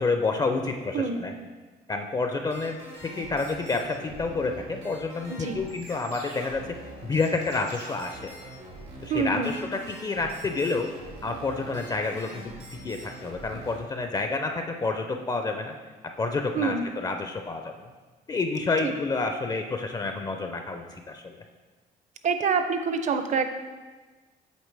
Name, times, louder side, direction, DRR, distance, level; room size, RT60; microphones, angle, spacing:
voice 1, 0.0-1.3 1.9-6.6 7.0-8.3 9.0-10.9 11.2-15.7 16.2-17.7 18.3-21.4, left 3 dB, 25° left, 5 dB, 0.4 m, -29 dB
voice 2, 0.9-1.2 5.3-5.6 9.1-9.6 16.5-16.9 18.8-18.9 22.2-23.5, right 5 dB, 45° right, 8 dB, 0.5 m, -26 dB
sound 1, 2.5-13.8, right 1 dB, 90° right, 1.8 m, -44 dB
8.0 x 3.8 x 3.3 m, 1.3 s
cardioid pair, 110°, 17 cm